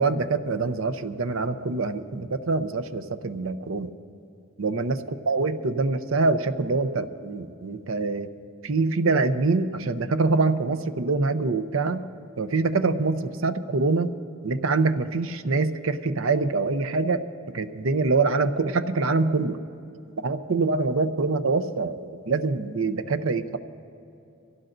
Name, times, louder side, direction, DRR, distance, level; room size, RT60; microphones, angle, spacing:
voice 1, 0.0-3.9 4.6-8.3 8.6-12.0 12.4-14.1 14.4-17.2 17.5-19.6 20.2-23.6, right 3 dB, 70° right, 10 dB, 0.7 m, -25 dB
24.0 x 16.5 x 2.6 m, 2.7 s
head